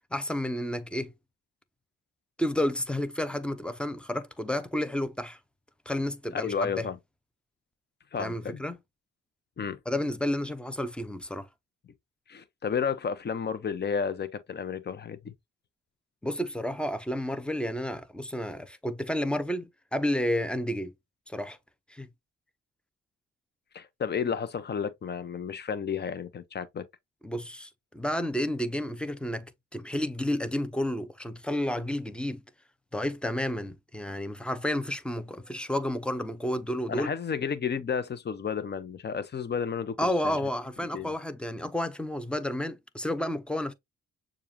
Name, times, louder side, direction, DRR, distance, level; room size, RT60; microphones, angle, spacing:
voice 1, 0.1-1.1 2.4-5.4 5.9-6.9 8.2-8.8 9.9-11.5 16.2-20.9 21.3-21.6 21.9-22.1 27.2-32.4 32.9-37.1 40.0-43.7, left 1 dB, 5° left, 0.7 m, -31 dB
voice 2, 6.3-7.0 8.1-8.6 9.6-9.8 12.3-15.3 23.7-26.9 36.9-40.5 40.9-41.1, left 6 dB, 35° left, 0.8 m, -32 dB
6.8 x 2.5 x 2.7 m
cardioid pair, 90°, 30 cm